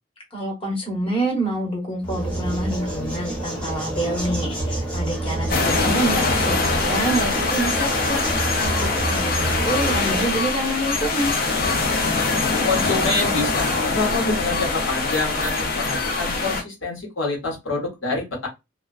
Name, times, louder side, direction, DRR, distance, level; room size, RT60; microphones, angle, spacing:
voice 1, 0.3-11.3, right 1 dB, 30° left, 1.1 m, -27 dB
sound 1, 2.0-10.5, right 1 dB, 5° left, 0.9 m, -28 dB
sound 2, 5.5-16.6, left 3 dB, 50° left, 0.6 m, -23 dB
voice 2, 12.7-18.5, left 3 dB, 90° left, 1.2 m, -26 dB
2.3 x 2.2 x 2.3 m
head